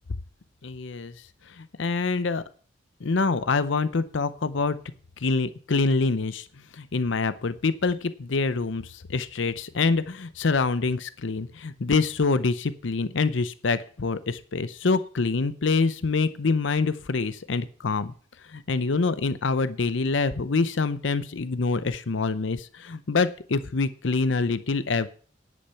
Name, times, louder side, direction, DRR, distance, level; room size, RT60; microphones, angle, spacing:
voice 1, 0.6-1.1 1.6-2.4 3.0-4.8 5.2-6.5 6.7-18.1 18.5-25.1, left 4 dB, 70° left, 14 dB, 0.7 m, -25 dB
10.5 x 8.5 x 5.7 m, 0.43 s
head